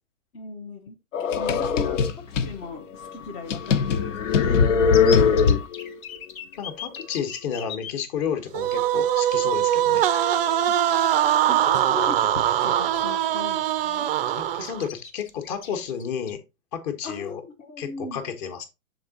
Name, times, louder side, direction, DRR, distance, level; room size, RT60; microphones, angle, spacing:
voice 1, 0.3-4.2 4.8-5.7 10.7-10.8 11.5-14.1 17.0-18.2, left 3 dB, 15° left, 0.5 m, -38 dB
sound 1, 1.1-2.5 3.0-3.1 3.5-5.9, left 6 dB, 60° left, 1.0 m, -20 dB
voice 2, 4.4-5.4 6.6-10.1 14.3-16.4 16.7-17.4 17.8-18.7, left 7 dB, 30° left, 1.1 m, -32 dB
sound 2, 4.9-7.9 8.9-9.0 9.3-9.5 11.1-11.2 11.7-12.0 12.4-13.1 13.4-13.6 13.8-14.3 14.6-16.3, left 7 dB, 75° left, 1.3 m, -38 dB
sound 3, 8.5-14.9, right 11 dB, 45° right, 0.5 m, -22 dB
6.9 x 3.8 x 3.9 m
hypercardioid pair, 135°, 42 cm